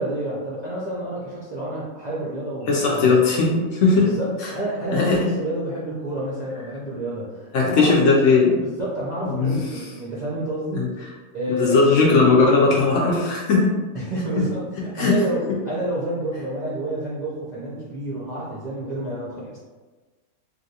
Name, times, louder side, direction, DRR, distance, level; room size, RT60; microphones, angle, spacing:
voice 1, 0.0-3.1 3.9-7.9 8.8-10.8 11.3-11.8 13.9-19.6, right 1 dB, 55° right, -8 dB, 0.4 m, -29 dB
voice 2, 2.7-4.1 4.4-4.5 4.9-5.3 7.5-8.6 9.2-9.6 10.7-10.9 11.5-13.8 15.0-15.2, left 4 dB, 70° left, -2 dB, 0.8 m, -18 dB
3.1 x 2.4 x 2.7 m, 1.3 s
omnidirectional pair, 1.6 m